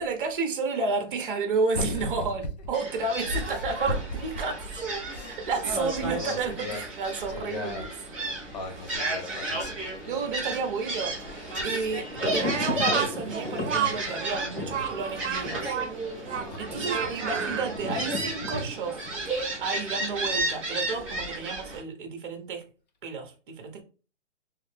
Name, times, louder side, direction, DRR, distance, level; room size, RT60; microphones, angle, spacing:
voice 1, 0.0-4.8 5.5-7.9 10.1-15.8 16.6-19.1 19.6-22.7 23.0-23.8, right 4 dB, 45° right, 1.0 m, -31 dB
voice 2, 1.7-2.4 3.4-4.2 5.1-6.8 7.3-7.9 8.5-10.7 11.5-12.0 16.3-16.6 19.8-19.9, left 2 dB, 35° left, 0.7 m, -37 dB
Gull seagull, 2.7-21.8, right 2 dB, 5° right, 0.8 m, -33 dB
Thunder, 9.5-20.3 20.6-20.7, left 2 dB, 75° left, 1.4 m, -38 dB
Speech, 12.4-17.8, right 7 dB, 70° right, 0.8 m, -31 dB
3.2 x 2.4 x 3.3 m
hypercardioid pair, 160°, 37 cm